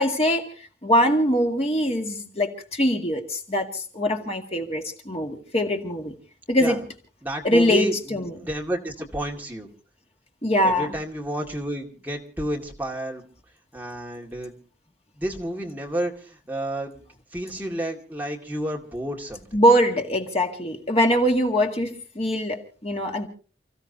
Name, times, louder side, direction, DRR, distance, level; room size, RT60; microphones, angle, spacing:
voice 1, 0.0-6.1 6.5-6.8 7.4-8.4 10.4-10.9 19.5-23.3, equal, 35° left, 3 dB, 2.0 m, -23 dB
voice 2, 7.2-9.7 10.6-13.3 13.7-14.6 15.2-19.5, right 1 dB, 10° right, -1 dB, 2.2 m, -31 dB
30.0 x 15.5 x 2.8 m, 0.39 s
head